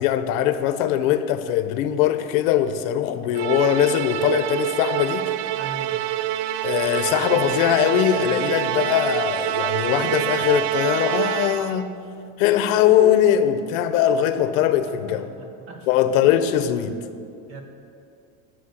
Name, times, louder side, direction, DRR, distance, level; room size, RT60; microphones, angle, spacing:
voice 1, 0.0-5.3 6.6-12.0 12.4-15.3 15.9-17.0, left 10 dB, 80° left, 0.9 m, -21 dB
Musical instrument, 3.3-11.9, right 13 dB, 50° right, 0.4 m, -26 dB
voice 2, 5.5-6.0 14.8-15.9 17.5-17.6, right 3 dB, 35° right, 1.3 m, -39 dB
11.5 x 6.7 x 8.1 m
cardioid pair, 175°, 40 cm